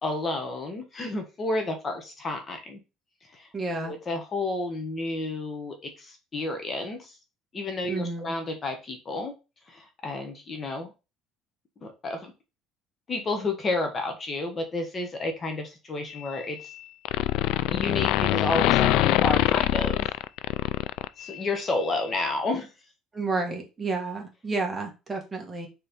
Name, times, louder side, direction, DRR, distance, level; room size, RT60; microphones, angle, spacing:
voice 1, 0.0-2.8 3.2-3.5 3.9-7.2 7.5-9.3 9.7-10.9 11.8-12.3 13.1-16.7 17.7-20.1 21.2-22.7, left 2 dB, 30° left, 5 dB, 1.2 m, -31 dB
voice 2, 3.5-3.9 7.9-8.3 23.1-25.7, right 3 dB, 15° right, 1 dB, 1.5 m, -31 dB
wierd render, 16.1-16.8 17.0-21.5, left 15 dB, 70° left, 0.3 m, -24 dB
4.4 x 4.3 x 5.2 m, 0.29 s
cardioid pair, 140°, 0 cm